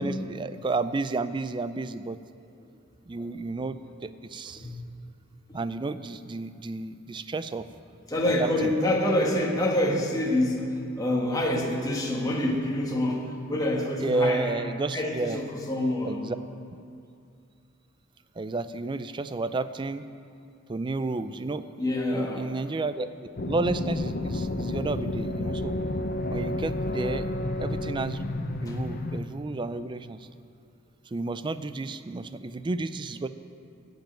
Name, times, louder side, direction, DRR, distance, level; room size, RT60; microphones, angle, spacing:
voice 1, 0.0-2.2 3.1-4.7 5.5-7.7 8.4-8.7 14.0-15.4 16.0-16.4 18.4-20.0 20.7-21.7 22.1-25.8 26.3-27.2 27.6-28.2 28.6-30.3 31.1-33.3, right 3 dB, 20° right, 12 dB, 0.3 m, -31 dB
voice 2, 8.1-14.5 14.9-16.2 21.8-22.5 28.7-28.8, left 1 dB, 15° left, -1 dB, 1.4 m, -27 dB
sound 1, 23.4-29.2, left 1 dB, 45° left, 0.6 m, -30 dB
14.5 x 5.2 x 9.0 m, 2.5 s
head